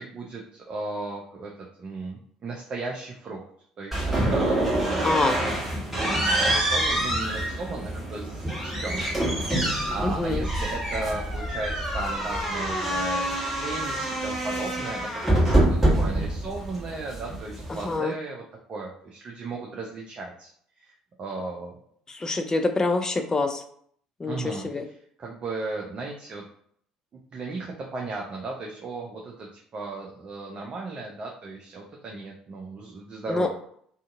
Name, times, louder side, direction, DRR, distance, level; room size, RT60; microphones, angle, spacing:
voice 1, 0.0-1.5 1.8-3.4 3.8-5.2 5.9-9.0 9.6-18.4 18.7-20.5 20.8-20.9 21.2-21.7 24.3-24.7 25.2-26.4 27.1-33.5, right 3 dB, 35° right, -1 dB, 0.5 m, -36 dB
sound 1, 3.9-18.0, right 1 dB, 5° right, 1.3 m, -26 dB
voice 2, 5.0-5.3 10.0-10.5 17.7-18.1 22.1-23.6 24.2-24.8 33.3-33.5, left 3 dB, 20° left, 6 dB, 0.4 m, -26 dB
2.6 x 2.4 x 2.4 m, 0.63 s
figure-of-eight pair, 55°, 3 cm